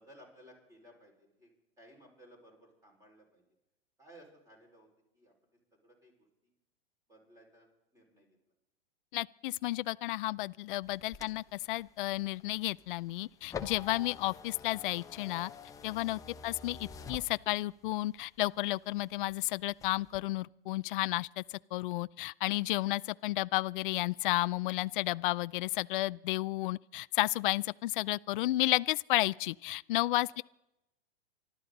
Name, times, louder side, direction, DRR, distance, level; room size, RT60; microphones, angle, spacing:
voice 1, 0.0-1.5 1.8-3.4 4.0-4.9 5.1-6.5 7.1-8.4 30.3-30.4, equal, 10° right, 5.0 m, -59 dB
voice 2, 9.1-15.5 15.8-30.4, left 18 dB, 55° left, 0.4 m, -32 dB
sound 1, 10.8-17.9 18.4-19.4 19.7-20.2, left 6 dB, 10° left, 0.8 m, -47 dB
25.0 x 12.5 x 4.0 m
hypercardioid pair, 145°, 31 cm